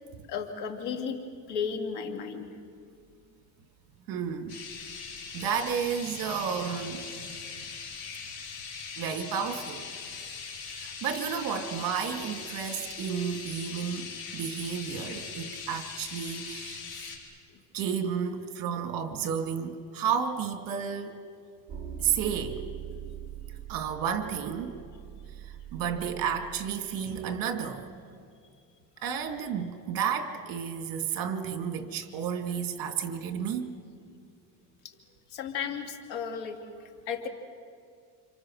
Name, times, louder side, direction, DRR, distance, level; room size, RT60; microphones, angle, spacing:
voice 1, 0.3-1.2 1.5-2.5 17.5-17.6 31.2-31.3 34.8-35.0 35.3-37.3, left 6 dB, 75° left, 4 dB, 2.9 m, -34 dB
voice 2, 4.1-4.6 5.3-7.4 9.0-9.9 10.7-16.8 17.7-21.2 22.0-22.7 23.7-24.8 25.4-27.9 29.0-33.7, right 7 dB, 55° right, 6 dB, 2.4 m, -32 dB
sound 1, 4.5-17.2, left 5 dB, 55° left, 5.8 m, -41 dB
sound 2, 21.7-26.8, right 9 dB, 20° right, 4.9 m, -42 dB
29.5 x 26.5 x 6.4 m, 2.2 s
cardioid pair, 140°, 41 cm